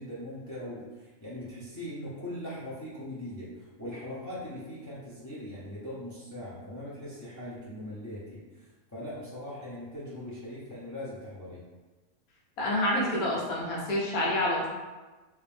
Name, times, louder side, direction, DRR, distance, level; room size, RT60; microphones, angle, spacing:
voice 1, 0.0-8.7 8.9-11.6, left 1 dB, 20° left, -10 dB, 0.6 m, -40 dB
voice 2, 12.6-14.7, left 1 dB, 75° left, -4 dB, 1.4 m, -28 dB
3.1 x 2.9 x 3.4 m, 1.2 s
omnidirectional pair, 1.5 m